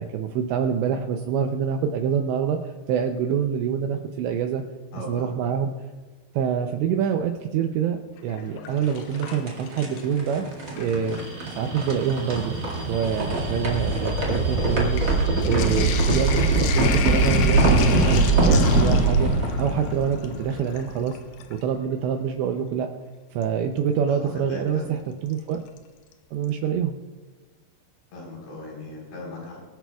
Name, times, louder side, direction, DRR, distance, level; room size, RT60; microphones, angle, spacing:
voice 1, 0.0-4.6 5.1-5.7 6.3-10.5 10.8-12.5 12.9-21.2 21.5-22.9 23.3-25.6 26.3-27.0, right 7 dB, 80° right, 5 dB, 2.7 m, -26 dB
voice 2, 4.9-5.4 24.1-24.9 28.1-29.6, left 1 dB, 65° left, -2 dB, 6.4 m, -38 dB
Sink (filling or washing), 8.2-10.2 10.5-11.4 12.2-12.3 12.5-21.7 23.4-23.5 25.3-25.8 26.1-26.2 26.4-26.5, left 8 dB, 85° left, 2.2 m, -34 dB
sound 1, 8.9-21.0, right 2 dB, 55° right, 1.2 m, -22 dB
Alarm, 11.0-19.1, right 1 dB, 40° right, 3.5 m, -42 dB
24.5 x 10.5 x 2.3 m, 1.4 s
omnidirectional pair, 5.5 m